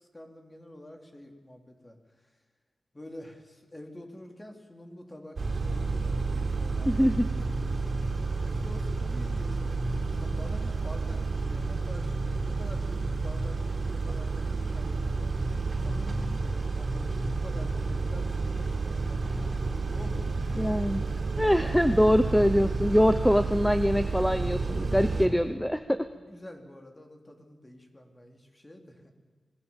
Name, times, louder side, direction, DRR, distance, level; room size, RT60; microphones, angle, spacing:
voice 1, 0.0-2.3 2.9-7.1 7.6-7.9 8.4-9.7 10.1-15.3 15.8-21.2 24.9-25.3 26.1-29.1, left 1 dB, 20° left, 3 dB, 3.5 m, -47 dB
Car / Idling / Accelerating revving vroom, 5.4-25.3, right 3 dB, 50° right, 3.6 m, -30 dB
voice 2, 6.9-7.3 20.6-21.0 21.4-26.1, equal, 5° left, 10 dB, 0.9 m, -24 dB
25.5 x 20.0 x 7.3 m, 1.5 s
wide cardioid pair, 105°, 0 cm